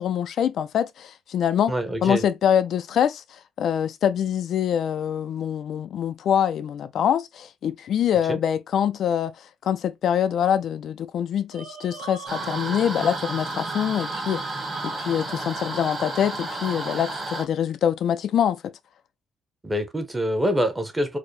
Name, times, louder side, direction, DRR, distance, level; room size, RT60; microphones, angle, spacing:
voice 1, 0.0-1.7 2.0-18.6, left 9 dB, 55° left, 0.3 m, -24 dB
voice 2, 1.7-2.2 8.3-8.4 19.6-21.2, equal, 10° right, 0.8 m, -25 dB
sound 1, 11.5-15.7, right 4 dB, 70° right, 1.0 m, -38 dB
sound 2, 12.3-17.4, right 2 dB, 25° right, 1.3 m, -32 dB
4.6 x 2.1 x 3.1 m
cardioid pair, 165°, 0 cm